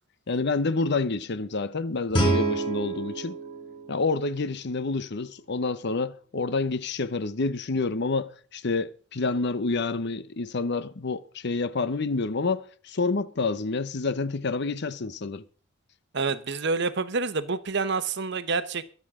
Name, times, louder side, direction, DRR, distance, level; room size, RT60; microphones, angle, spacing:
voice 1, 0.3-3.4 3.9-15.4, left 3 dB, 60° left, 0.8 m, -28 dB
Guitar, 2.1-4.9, right 2 dB, 25° left, 5.1 m, -28 dB
voice 2, 16.1-18.8, right 4 dB, 60° right, 1.0 m, -27 dB
23.0 x 8.4 x 3.7 m
head